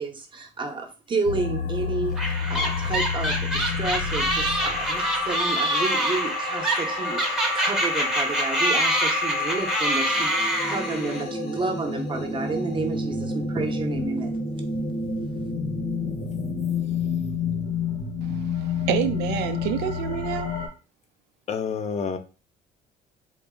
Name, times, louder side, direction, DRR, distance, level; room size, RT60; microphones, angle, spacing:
voice 1, 0.0-14.3, right 3 dB, 30° right, 0.8 m, -31 dB
sound 1, 1.3-20.7, left 4 dB, 70° left, 1.0 m, -29 dB
sound 2, 2.2-11.2, equal, 5° right, 0.8 m, -26 dB
voice 2, 18.2-20.5, right 11 dB, 85° right, 0.4 m, -28 dB
voice 3, 21.5-22.2, left 6 dB, 40° left, 0.5 m, -28 dB
3.7 x 2.0 x 3.6 m
cardioid pair, 110°, 17 cm